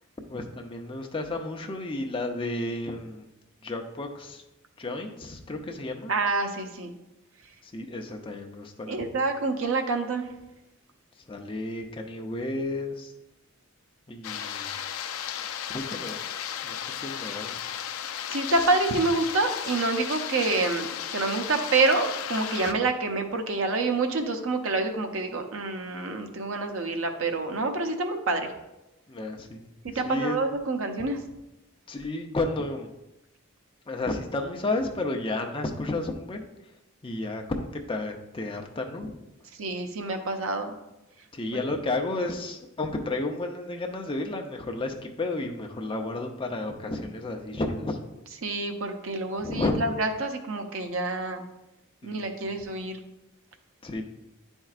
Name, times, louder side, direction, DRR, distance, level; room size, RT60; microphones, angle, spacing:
voice 1, 0.3-3.3 3.6-4.4 4.8-6.1 7.6-9.0 11.3-13.1 14.1-14.7 15.7-16.2 16.6-17.6 29.1-29.7 30.0-30.4 31.9-32.9 33.9-36.5 37.0-39.1 41.3-48.0 49.4-49.8 52.0-52.6 53.8-54.0, left 2 dB, 25° left, 3 dB, 0.6 m, -32 dB
voice 2, 6.1-7.0 8.9-10.3 18.3-28.5 29.8-31.2 39.6-40.7 41.5-41.6 48.4-51.4 52.0-53.0, right 3 dB, 70° right, 5 dB, 0.6 m, -27 dB
sound 1, 14.2-22.7, left 9 dB, 75° left, 0.4 m, -35 dB
9.4 x 4.4 x 2.4 m, 0.95 s
head